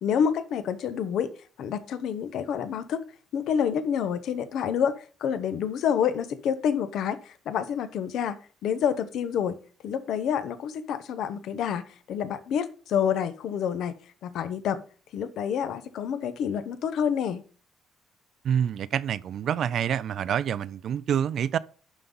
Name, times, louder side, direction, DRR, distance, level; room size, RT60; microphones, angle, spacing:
voice 1, 0.0-1.3 1.6-3.0 3.3-8.4 8.6-14.8 15.1-17.4, left 8 dB, 70° left, 0.9 m, -28 dB
voice 2, 18.4-21.6, right 9 dB, 60° right, 0.4 m, -27 dB
11.5 x 4.0 x 5.4 m
cardioid pair, 140°, 0 cm